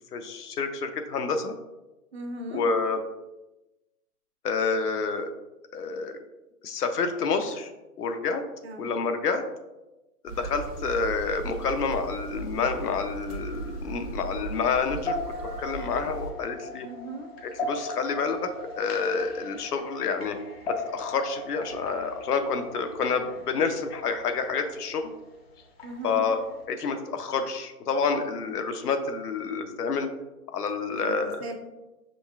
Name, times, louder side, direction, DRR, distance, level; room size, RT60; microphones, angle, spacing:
voice 1, 0.1-1.5 2.5-3.0 4.4-5.3 5.7-6.2 6.6-7.7 8.0-8.4 8.8-9.4 10.2-16.9 17.4-20.4 20.7-25.1 26.0-26.4 26.7-30.1 30.5-31.4, left 5 dB, 80° left, 7 dB, 0.7 m, -28 dB
voice 2, 2.1-2.6 8.6-8.9 16.8-17.3 25.8-26.2 30.9-31.6, right 2 dB, 45° right, 3 dB, 0.6 m, -38 dB
sound 1, 10.3-16.3, right 4 dB, 80° right, 1.0 m, -38 dB
sound 2, 13.3-26.6, left 2 dB, 45° left, 0.6 m, -39 dB
5.2 x 3.2 x 2.4 m, 1.0 s
hypercardioid pair, 155°, 46 cm